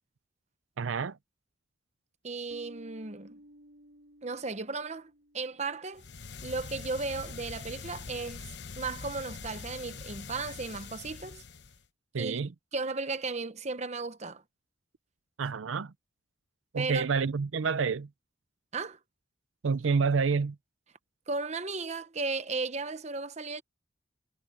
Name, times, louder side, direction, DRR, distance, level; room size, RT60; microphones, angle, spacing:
voice 1, 0.8-1.2 12.1-12.5 15.4-15.9 16.7-18.1 19.6-20.5, right 5 dB, 90° right, 0.5 m, -28 dB
voice 2, 2.2-3.4 4.2-6.0 6.4-8.4 8.8-11.4 12.2-12.4 12.7-14.4 16.8-17.1 18.7-19.0 21.3-23.6, right 3 dB, 35° right, 1.0 m, -35 dB
Bass guitar, 2.5-6.0, equal, 70° right, 6.8 m, -55 dB
sound 1, 5.9-11.9, left 4 dB, 60° left, 1.0 m, -43 dB
head